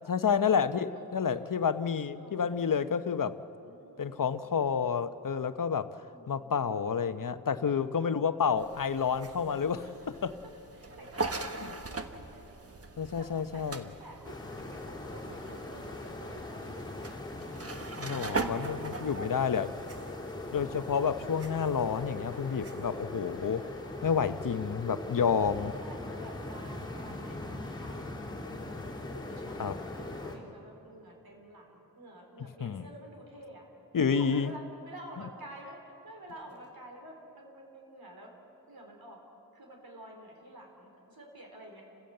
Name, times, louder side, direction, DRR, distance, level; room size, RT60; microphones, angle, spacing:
voice 1, 0.0-3.4 4.0-5.9 6.3-9.9 10.2-10.4 13.0-13.8 17.9-19.7 20.5-23.7 24.0-25.7 29.6-29.7 32.6-32.8 33.9-34.5, left 6 dB, 65° left, 11 dB, 0.8 m, -29 dB
voice 2, 0.6-1.3 2.2-3.0 3.6-4.5 6.0-6.6 7.4-8.2 9.4-12.8 13.2-17.1 18.2-19.7 22.5-23.3 24.8-25.2 25.8-33.6 34.0-38.3 38.7-39.2 39.5-41.8, right 1 dB, 85° right, 1 dB, 4.0 m, -51 dB
sound 1, 8.6-24.6, right 3 dB, 40° right, 1.3 m, -42 dB
sound 2, 14.2-30.4, left 2 dB, 10° left, 3.4 m, -41 dB
30.0 x 16.0 x 7.8 m, 3.0 s
wide cardioid pair, 100°, 35 cm